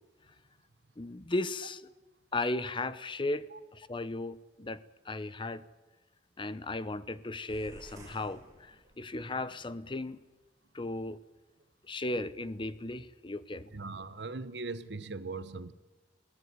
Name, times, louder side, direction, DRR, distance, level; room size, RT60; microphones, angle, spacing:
voice 1, 1.0-1.8 2.3-5.6 6.4-10.2 10.7-11.2 11.9-13.7, left 2 dB, 30° left, 15 dB, 0.8 m, -36 dB
sound 1, 7.5-9.3, right 1 dB, 20° right, 5.9 m, -53 dB
voice 2, 13.7-15.7, right 3 dB, 75° right, 14 dB, 1.1 m, -39 dB
22.0 x 17.5 x 9.5 m, 1.2 s
head